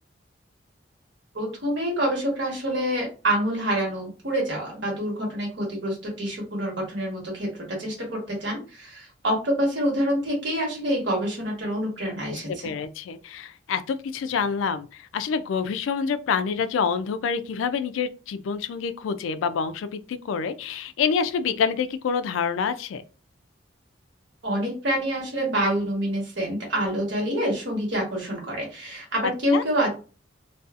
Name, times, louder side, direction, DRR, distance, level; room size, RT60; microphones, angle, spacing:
voice 1, 1.3-12.7 24.4-29.9, equal, 70° right, -1 dB, 1.2 m, -27 dB
voice 2, 12.3-23.0 29.2-29.6, left 6 dB, 85° left, 12 dB, 0.3 m, -27 dB
2.6 x 2.3 x 2.4 m, 0.35 s
head